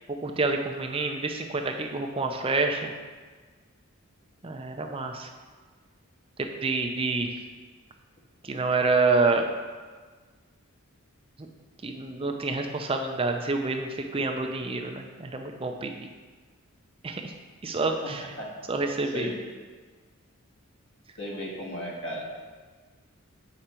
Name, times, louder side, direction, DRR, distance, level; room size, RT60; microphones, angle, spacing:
voice 1, 0.1-2.9 4.4-5.3 6.4-7.3 8.4-9.5 11.4-11.5 11.8-16.1 17.0-17.3 17.6-18.2 18.7-19.3, right 3 dB, 25° right, 4 dB, 0.5 m, -28 dB
voice 2, 21.2-22.3, left 1 dB, 50° left, -3 dB, 1.7 m, -35 dB
8.1 x 5.0 x 4.4 m, 1.4 s
head